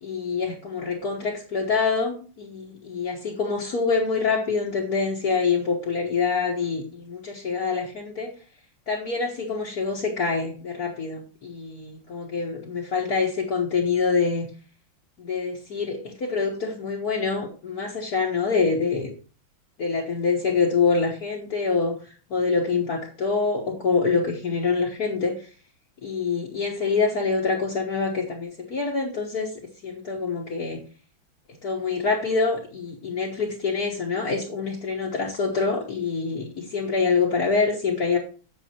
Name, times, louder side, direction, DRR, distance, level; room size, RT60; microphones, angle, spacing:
voice 1, 0.0-8.3 8.9-14.5 15.2-19.1 19.8-21.9 22.3-25.4 26.0-29.5 29.8-30.8 31.6-38.2, left 4 dB, 50° left, -2 dB, 1.8 m, -25 dB
8.4 x 7.1 x 4.4 m, 0.39 s
omnidirectional pair, 2.2 m